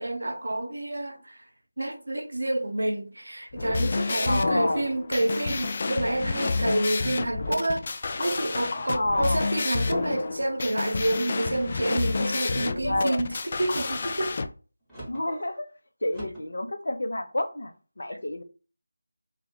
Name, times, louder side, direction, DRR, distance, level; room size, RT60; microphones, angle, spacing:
voice 1, 0.0-1.5 1.8-14.3, right 1 dB, 80° right, 0.7 m, -29 dB
sound 1, 3.5-14.5, left 4 dB, 40° left, 0.3 m, -30 dB
voice 2, 4.3-4.8 8.9-9.4 12.4-13.2 15.1-15.7 16.0-18.4, left 1 dB, 70° left, 0.6 m, -29 dB
sound 2, 5.2-5.6 6.3-6.8 7.4-7.9 8.6-9.0 9.7-10.1 11.3-11.7 12.5-12.9 13.6-14.1 14.9-15.3 16.1-16.5, right 1 dB, ahead, 1.0 m, -44 dB
2.3 x 2.2 x 3.5 m
figure-of-eight pair, 165°, 0 cm